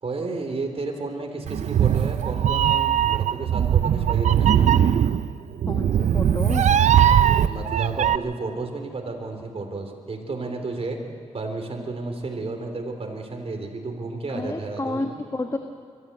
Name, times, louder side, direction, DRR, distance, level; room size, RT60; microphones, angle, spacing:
voice 1, 0.0-4.5 7.4-11.0 11.3-15.1, right 3 dB, 55° right, 3 dB, 3.5 m, -32 dB
Meow, 1.5-8.2, right 9 dB, 85° right, 0.5 m, -20 dB
voice 2, 5.7-6.7 14.3-15.6, left 2 dB, 30° left, 4 dB, 1.5 m, -30 dB
24.0 x 14.0 x 8.1 m, 2.4 s
cardioid pair, 60°, 12 cm